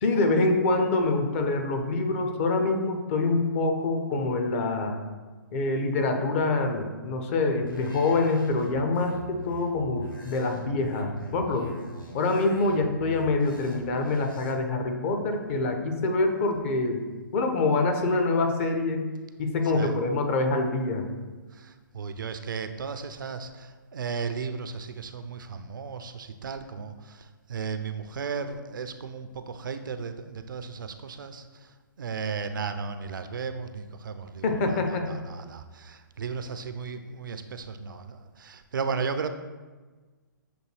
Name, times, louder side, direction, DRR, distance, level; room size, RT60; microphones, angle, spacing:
voice 1, 0.0-4.9 5.5-11.8 12.1-17.0 17.3-19.1 19.4-21.0 34.4-35.1, left 3 dB, 40° left, 5 dB, 0.6 m, -25 dB
sound 1, 7.7-14.5, left 1 dB, 80° left, 0.9 m, -43 dB
voice 2, 16.1-16.4 19.7-20.0 21.5-39.3, right 5 dB, 70° right, 9 dB, 0.4 m, -35 dB
6.7 x 2.3 x 3.2 m, 1.3 s
figure-of-eight pair, 125°, 11 cm